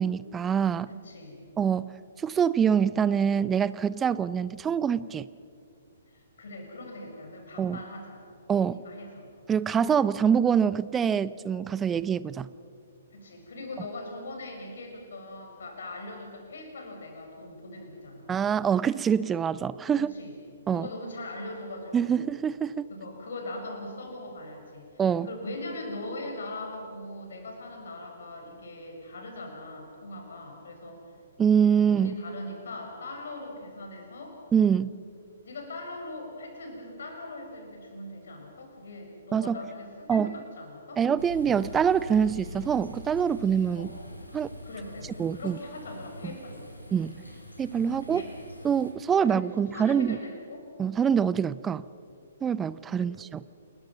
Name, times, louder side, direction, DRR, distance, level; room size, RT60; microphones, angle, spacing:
voice 1, 0.0-0.9 1.6-1.9 2.2-5.3 7.6-7.8 8.5-8.8 9.5-12.5 18.3-20.1 20.7-20.9 21.9-22.9 25.0-25.3 31.4-32.2 34.5-34.9 39.3-39.6 40.1-40.3 41.0-43.9 44.3-44.5 45.2-45.6 46.9-47.2 47.6-48.2 48.6-50.2 50.8-51.8 52.4-53.4, right 7 dB, 15° right, 18 dB, 0.5 m, -25 dB
voice 2, 0.9-1.5 6.1-8.2 8.7-9.3 13.1-18.3 20.0-20.3 20.7-22.2 22.9-31.0 31.9-34.4 35.4-41.0 43.8-44.0 44.6-46.7 48.0-48.3 49.2-49.4 49.7-50.7 53.0-53.1, left 2 dB, 60° left, 2 dB, 6.0 m, -41 dB
sound 1, 41.2-48.9, left 1 dB, 80° left, 4.1 m, -44 dB
29.5 x 21.0 x 6.0 m, 2.5 s
figure-of-eight pair, 120°, 0 cm